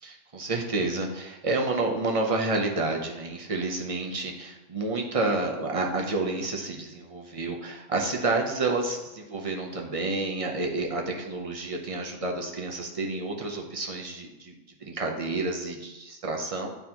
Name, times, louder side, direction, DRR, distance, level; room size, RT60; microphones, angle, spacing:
voice 1, 0.0-14.5 14.8-16.7, right 2 dB, 35° right, 1 dB, 0.7 m, -29 dB
9.1 x 3.9 x 2.9 m, 1.0 s
omnidirectional pair, 1.3 m